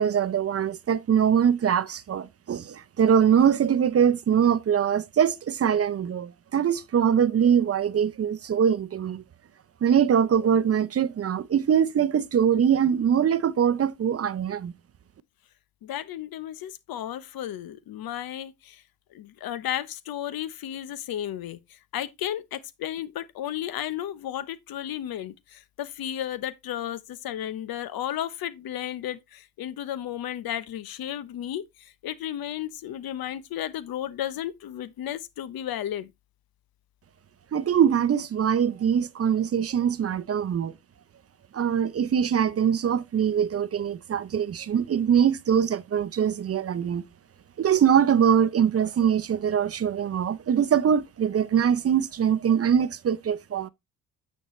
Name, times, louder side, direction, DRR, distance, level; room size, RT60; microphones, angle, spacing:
voice 1, 0.0-9.2 9.8-14.7 37.5-40.7 41.5-47.0 47.6-53.7, right 8 dB, 40° right, 0.6 m, -23 dB
voice 2, 15.8-18.8 19.1-36.1, left 11 dB, 65° left, 0.9 m, -33 dB
9.2 x 4.5 x 3.1 m
supercardioid pair, 70°, 39 cm